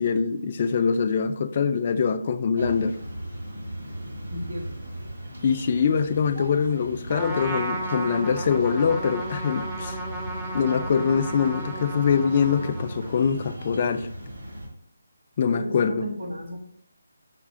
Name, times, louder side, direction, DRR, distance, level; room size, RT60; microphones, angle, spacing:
voice 1, 0.0-3.0 5.4-10.0 10.5-14.1 15.4-16.1, left 6 dB, 35° left, 0.3 m, -23 dB
sound 1, 2.6-14.7, right 1 dB, 75° right, 1.5 m, -37 dB
voice 2, 4.3-4.8 15.5-16.6, equal, 55° right, 1.8 m, -34 dB
Trumpet, 7.1-13.3, right 2 dB, 15° right, 0.6 m, -34 dB
5.7 x 2.4 x 3.6 m
figure-of-eight pair, 160°, 0 cm